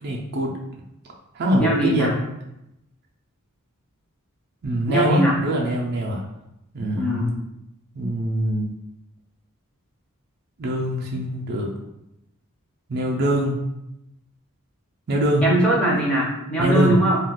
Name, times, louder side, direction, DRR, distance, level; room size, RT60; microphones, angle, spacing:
voice 1, 0.0-0.5 1.3-2.1 4.6-6.2 6.7-7.1 7.9-8.8 10.6-11.7 12.9-13.6 15.1-15.4 16.6-17.0, equal, 45° right, -1 dB, 0.4 m, -23 dB
voice 2, 1.6-2.1 4.9-5.4 7.0-7.4 15.4-17.2, right 1 dB, 5° left, -5 dB, 0.6 m, -21 dB
2.3 x 2.3 x 3.4 m, 0.86 s
head